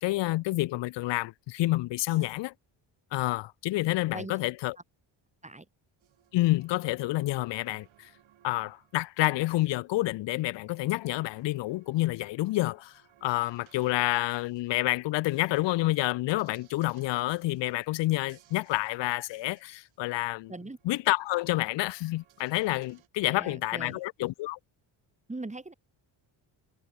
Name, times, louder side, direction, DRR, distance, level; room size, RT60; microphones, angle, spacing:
voice 1, 0.0-2.5 3.1-4.8 6.3-8.1 8.4-12.9 13.2-20.5 20.9-24.6, left 18 dB, 70° left, 0.5 m, -28 dB
sound 1, 6.0-23.1, right 12 dB, 80° right, 5.9 m, -64 dB
voice 2, 23.2-24.0 25.3-25.7, right 2 dB, 15° right, 3.3 m, -40 dB
cardioid pair, 110°, 46 cm